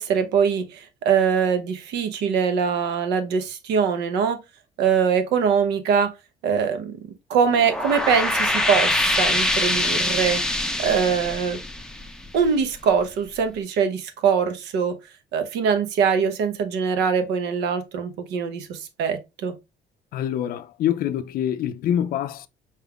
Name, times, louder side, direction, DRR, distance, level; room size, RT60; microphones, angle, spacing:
voice 1, 0.0-4.4 4.8-6.1 6.4-7.0 7.3-10.4 10.8-11.6 12.3-14.9 15.3-19.5, right 6 dB, 85° right, 0.8 m, -22 dB
sound 1, 7.5-12.8, left 1 dB, 5° left, 0.5 m, -24 dB
voice 2, 20.1-22.5, left 10 dB, 60° left, 0.4 m, -25 dB
4.4 x 3.5 x 2.3 m
cardioid pair, 110°, 17 cm